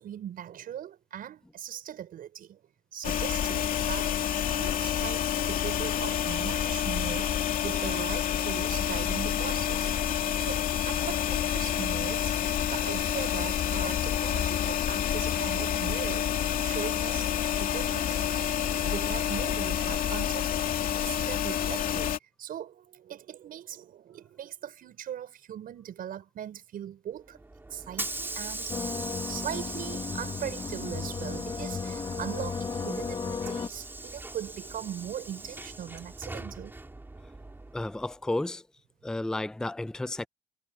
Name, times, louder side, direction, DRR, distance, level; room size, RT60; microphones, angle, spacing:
voice 1, 0.0-2.6 2.9-10.0 10.4-17.3 17.6-20.7 21.0-27.4 27.7-28.8 29.3-36.7, right 10 dB, 60° right, 6.0 m, -40 dB
sound 1, 3.0-22.2, left 10 dB, 55° left, 2.6 m, -28 dB
Hiss / Sliding door, 27.3-38.1, right 2 dB, 10° right, 4.4 m, -40 dB
sound 2, 28.7-33.7, left 5 dB, 25° left, 1.2 m, -35 dB
voice 2, 37.7-38.6 39.0-40.3, left 2 dB, 5° left, 0.5 m, -32 dB
cardioid pair, 110°, 17 cm